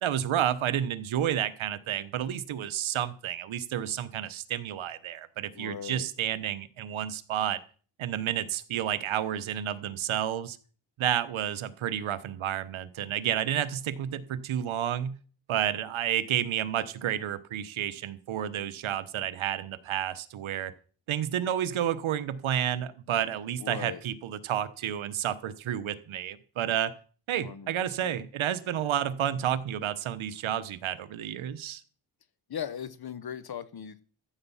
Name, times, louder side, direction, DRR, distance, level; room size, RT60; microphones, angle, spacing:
voice 1, 0.0-7.6 8.0-10.6 11.0-15.2 15.5-20.7 21.1-26.9 27.3-31.8, right 10 dB, 75° right, 1.2 m, -30 dB
voice 2, 5.5-6.1 23.6-24.0 27.4-27.7 28.0-28.2 32.5-34.0, left 8 dB, 50° left, 1.1 m, -38 dB
14.5 x 8.1 x 5.6 m
cardioid pair, 95°, 48 cm